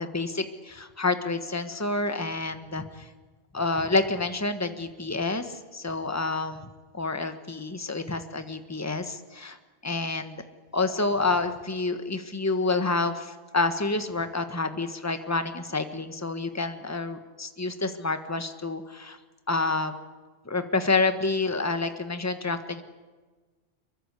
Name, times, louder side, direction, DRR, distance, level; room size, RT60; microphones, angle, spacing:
voice 1, 0.0-3.1 3.5-6.7 6.9-9.6 9.8-10.4 10.7-19.2 19.5-19.9 20.4-22.8, left 3 dB, 15° left, 8 dB, 1.4 m, -28 dB
24.5 x 22.5 x 8.3 m, 1.3 s
omnidirectional pair, 1.1 m